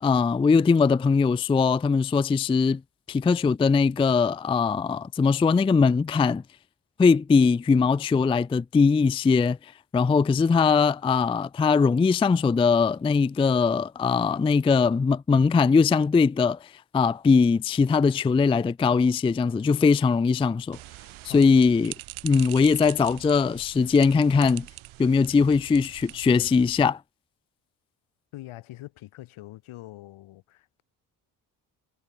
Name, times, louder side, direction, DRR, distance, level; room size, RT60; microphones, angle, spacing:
voice 1, 0.0-2.8 3.1-6.4 7.0-9.6 9.9-16.7 16.9-20.8 21.3-21.9 22.2-24.7 25.0-27.0, left 5 dB, 10° left, 0.4 m, -21 dB
sound 1, 20.7-26.8, right 17 dB, 70° right, 1.2 m, -43 dB
voice 2, 28.3-30.8, left 16 dB, 75° left, 4.5 m, -43 dB
supercardioid pair, 55°, 49 cm